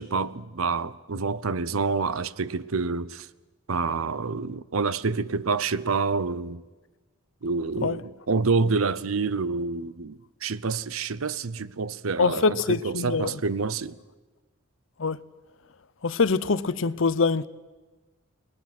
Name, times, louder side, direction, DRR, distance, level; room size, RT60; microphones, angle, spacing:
voice 1, 0.0-3.3 3.7-6.6 7.4-14.0, right 4 dB, 85° right, 0.8 m, -27 dB
voice 2, 12.2-13.3 15.0-15.2 16.0-17.5, left 4 dB, 65° left, 0.7 m, -24 dB
29.5 x 20.0 x 6.1 m
head